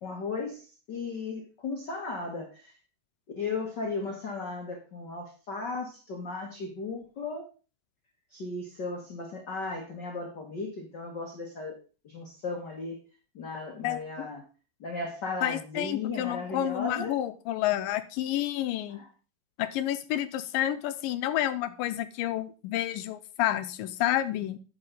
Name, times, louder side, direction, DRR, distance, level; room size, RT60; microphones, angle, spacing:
voice 1, 0.0-2.7 3.3-7.5 8.3-11.8 12.0-13.0 13.3-14.4 14.8-17.1 18.9-19.1, left 3 dB, 45° left, 1 dB, 1.5 m, -36 dB
voice 2, 13.8-14.3 15.4-19.0 19.6-24.6, left 13 dB, 90° left, 11 dB, 2.4 m, -30 dB
9.8 x 5.7 x 5.4 m, 0.36 s
omnidirectional pair, 4.0 m